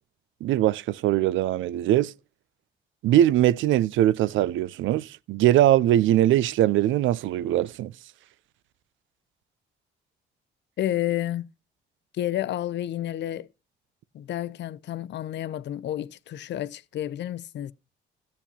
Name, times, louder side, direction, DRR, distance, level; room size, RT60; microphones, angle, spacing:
voice 1, 0.4-2.1 3.0-7.9, right 13 dB, 75° right, 0.4 m, -21 dB
voice 2, 10.8-11.5 12.1-13.5 14.1-17.7, left 12 dB, 60° left, 0.5 m, -30 dB
14.0 x 8.5 x 2.8 m
cardioid pair, 90°, 20 cm